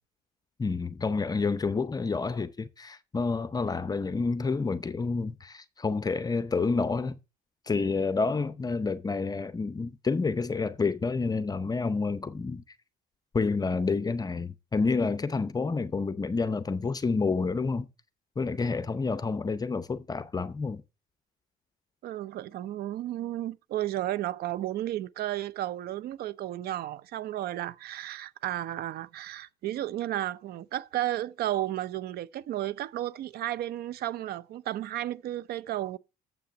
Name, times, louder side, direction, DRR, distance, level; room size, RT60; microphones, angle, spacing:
voice 1, 0.6-7.2 7.7-12.6 13.3-17.9 18.4-20.8, left 4 dB, 20° left, 0.7 m, -29 dB
voice 2, 22.0-36.0, right 13 dB, 70° right, 0.7 m, -33 dB
7.6 x 5.8 x 7.2 m
cardioid pair, 110°, 17 cm